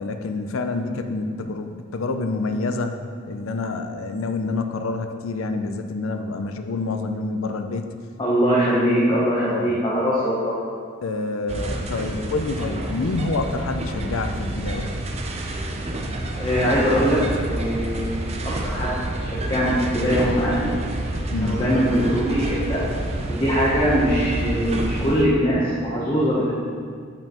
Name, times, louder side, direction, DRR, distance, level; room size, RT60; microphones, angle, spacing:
voice 1, 0.0-7.9 9.5-9.8 11.0-15.0 21.3-21.6, left 3 dB, 75° left, 7 dB, 0.5 m, -27 dB
voice 2, 8.2-10.6 16.4-18.9 19.2-20.7 21.4-22.8 23.3-26.5, equal, 25° left, -8 dB, 0.9 m, -22 dB
sound 1, 11.5-25.2, right 1 dB, 30° right, 0.5 m, -28 dB
8.9 x 5.4 x 3.0 m, 2.1 s
head